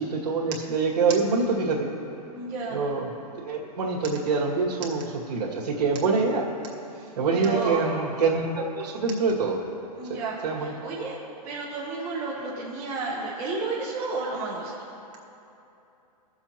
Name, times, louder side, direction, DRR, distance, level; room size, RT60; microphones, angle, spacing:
voice 1, 0.0-1.9 2.7-3.1 3.4-6.5 7.2-9.6 10.1-10.2 10.4-10.7, right 4 dB, 80° right, -3 dB, 2.2 m, -25 dB
voice 2, 2.3-2.8 6.9-8.0 10.0-11.2 11.4-14.7, right 3 dB, 10° right, -7 dB, 0.7 m, -32 dB
19.5 x 7.1 x 3.0 m, 2.8 s
hypercardioid pair, 175°, 21 cm